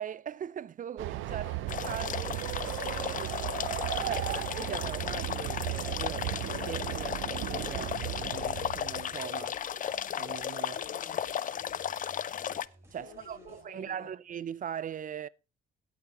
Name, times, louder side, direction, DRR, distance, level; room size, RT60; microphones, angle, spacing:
voice 1, 0.0-1.4 1.8-2.4 3.1-3.3 4.1-9.6 10.2-10.8 12.9-15.3, right 9 dB, 40° right, 0.4 m, -40 dB
Train, 1.0-9.1, right 16 dB, 85° right, 0.6 m, -36 dB
voice 2, 1.3-1.6 3.3-4.4 10.6-12.0 12.9-14.1, left 7 dB, 85° left, 2.3 m, -54 dB
sound 1, 1.7-12.7, left 9 dB, 40° left, 0.4 m, -35 dB
sound 2, 7.7-13.6, right 1 dB, 15° right, 4.4 m, -59 dB
17.0 x 8.1 x 3.0 m
cardioid pair, 90°, 20 cm